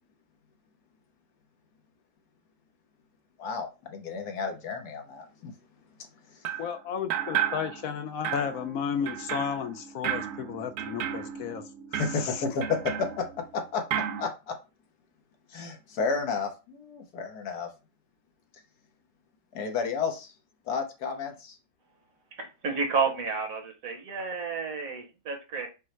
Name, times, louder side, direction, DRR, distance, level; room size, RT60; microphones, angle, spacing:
voice 1, 3.4-5.5 6.0-6.5 11.9-13.3 13.5-14.5 15.5-17.7 19.5-20.3 20.7-21.6, left 5 dB, 85° left, 1.5 m, -32 dB
sound 1, 6.4-6.7 7.1-8.0 8.2-13.6 13.9-14.3, right 10 dB, 85° right, 1.1 m, -33 dB
voice 2, 6.6-12.4, left 8 dB, 70° left, 0.9 m, -33 dB
voice 3, 22.3-25.7, right 5 dB, 65° right, 1.4 m, -31 dB
5.4 x 2.1 x 4.4 m
omnidirectional pair, 1.6 m